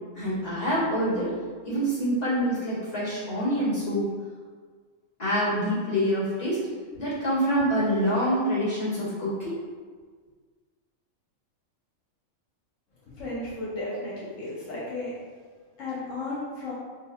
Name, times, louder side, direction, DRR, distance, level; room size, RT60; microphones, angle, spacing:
voice 1, 0.1-1.3 1.6-4.1 5.2-6.7 6.9-9.6, equal, 30° left, -11 dB, 1.6 m, -26 dB
voice 2, 13.2-15.1 15.8-16.7, left 2 dB, 80° left, -7 dB, 1.3 m, -34 dB
5.5 x 2.5 x 2.3 m, 1.5 s
omnidirectional pair, 1.3 m